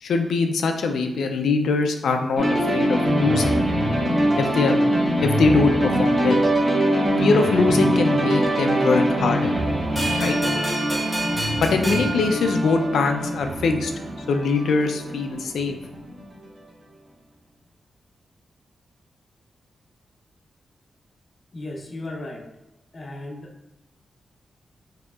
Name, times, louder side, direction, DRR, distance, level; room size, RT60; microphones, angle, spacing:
voice 1, 0.0-3.5 4.4-4.9 5.2-6.4 7.2-9.5 10.2-10.4 11.6-13.9 14.3-15.7 16.2-16.3, left 4 dB, 90° left, 5 dB, 0.4 m, -22 dB
sound 1, 2.4-16.1, right 1 dB, 30° right, 0.7 m, -23 dB
sound 2, 10.0-13.2, right 2 dB, ahead, 1.0 m, -29 dB
voice 2, 21.5-22.4 22.9-23.5, left 2 dB, 35° left, 0 dB, 0.5 m, -35 dB
4.8 x 2.8 x 2.3 m, 0.95 s
wide cardioid pair, 140°, 0 cm